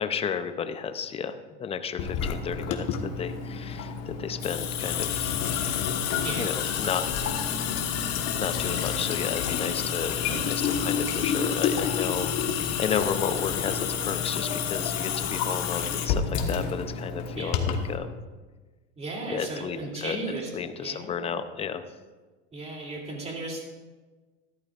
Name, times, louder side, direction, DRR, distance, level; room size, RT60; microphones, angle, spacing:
voice 1, 0.0-5.3 6.4-7.0 8.3-18.2 19.3-20.2 20.5-21.8, left 7 dB, 15° left, 10 dB, 0.6 m, -32 dB
Water tap faucet / Sink (filling or washing) / Drip, 2.0-18.0, left 7 dB, 45° left, 1.4 m, -29 dB
voice 2, 6.2-6.5 10.2-11.0 17.3-17.6 19.0-20.5 20.8-21.4 22.5-23.6, right 2 dB, 20° right, -1 dB, 2.9 m, -36 dB
14.5 x 13.0 x 2.5 m, 1.3 s
supercardioid pair, 125°, 36 cm